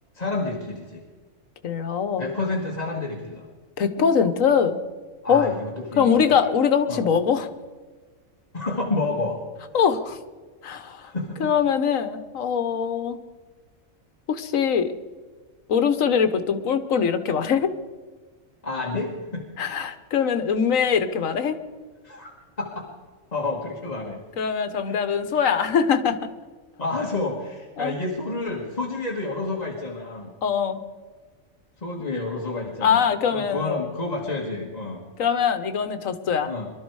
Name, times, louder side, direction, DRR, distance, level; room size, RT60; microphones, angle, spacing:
voice 1, 0.1-1.0 2.2-3.5 5.2-6.4 6.9-7.1 8.5-9.4 9.7-9.8 11.0-11.5 18.6-19.5 20.2-20.3 22.0-22.9 23.3-24.2 24.9-25.2 26.8-30.3 31.8-35.1 36.5-36.7, left 3 dB, 30° left, -2 dB, 1.7 m, -30 dB
voice 2, 1.6-2.3 3.8-4.8 5.3-5.5 6.0-7.5 9.7-10.2 10.6-11.1 11.4-13.2 14.3-14.9 15.7-17.7 19.6-21.6 24.4-26.2 27.8-27.9 30.4-30.8 32.8-33.8 35.2-36.5, left 7 dB, 75° left, 10 dB, 1.4 m, -22 dB
23.0 x 12.5 x 4.7 m, 1.4 s
omnidirectional pair, 1.4 m